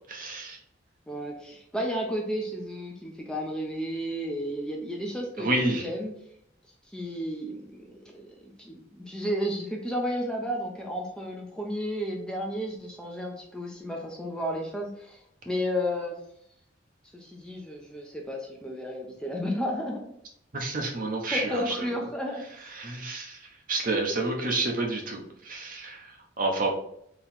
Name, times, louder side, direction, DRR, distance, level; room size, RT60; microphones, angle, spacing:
voice 1, 0.1-0.6 5.4-5.9 20.5-21.9 22.6-23.4 23.7-26.7, right 2 dB, 50° right, 2 dB, 0.9 m, -29 dB
voice 2, 1.1-6.1 6.9-15.2 15.5-16.2 17.1-20.0 21.3-22.4, equal, 5° left, -1 dB, 0.7 m, -32 dB
4.0 x 3.1 x 4.3 m, 0.71 s
head